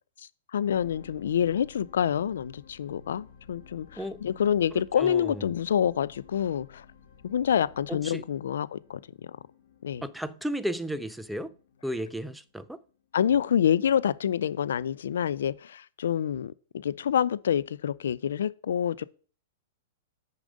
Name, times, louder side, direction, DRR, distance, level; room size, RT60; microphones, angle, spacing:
voice 1, 0.5-6.8 7.2-9.0 9.8-10.0 13.1-19.0, left 9 dB, 75° left, 0.3 m, -27 dB
sound 1, 0.6-13.0 13.6-13.7, left 6 dB, 55° left, 1.5 m, -54 dB
voice 2, 4.7-5.4 7.9-8.2 10.0-11.5 11.8-12.8, equal, 5° right, 0.4 m, -34 dB
6.6 x 4.9 x 5.2 m
hypercardioid pair, 120°, 0 cm